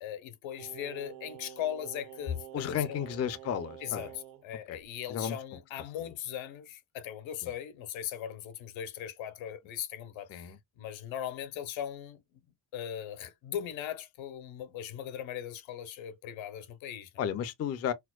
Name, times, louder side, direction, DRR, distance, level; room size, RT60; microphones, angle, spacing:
voice 1, 0.0-3.1 3.8-12.2 12.7-17.1, left 10 dB, 80° left, 0.9 m, -39 dB
Singing, 0.6-4.4 4.7-4.9, right 11 dB, 50° right, 0.5 m, -48 dB
voice 2, 2.5-4.1 4.7-4.8 5.1-5.4 10.3-10.6 17.2-17.9, left 9 dB, 35° left, 0.4 m, -33 dB
4.4 x 2.1 x 2.2 m
cardioid pair, 135°, 46 cm